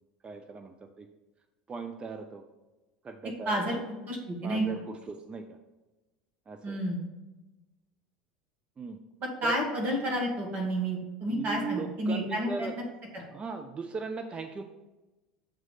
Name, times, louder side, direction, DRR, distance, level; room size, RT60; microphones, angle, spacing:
voice 1, 0.2-1.1 1.7-2.4 3.0-3.6 4.4-5.6 6.5-6.8 8.8-9.0 9.4-9.5 11.3-12.7 13.3-14.6, right 4 dB, 25° right, 7 dB, 0.5 m, -38 dB
voice 2, 3.5-3.8 4.1-4.7 6.6-7.0 9.4-12.7 13.1-13.2, right 1 dB, 45° right, 0 dB, 2.0 m, -30 dB
7.4 x 3.1 x 5.7 m, 1.1 s
hypercardioid pair, 80°, 4 cm